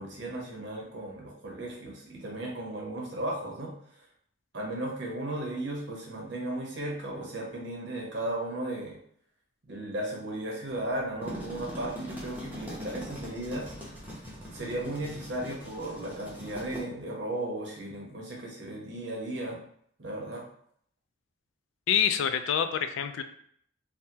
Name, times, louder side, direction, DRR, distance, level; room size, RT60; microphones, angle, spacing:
voice 1, 0.0-3.7 4.5-9.0 9.7-13.7 14.5-19.6 20.0-20.4, right 1 dB, 65° right, -2 dB, 0.9 m, -35 dB
sound 1, 11.0-16.8, equal, 10° right, 0.7 m, -42 dB
voice 2, 21.9-23.2, left 8 dB, 85° left, 9 dB, 0.3 m, -26 dB
3.5 x 2.1 x 2.8 m, 0.66 s
head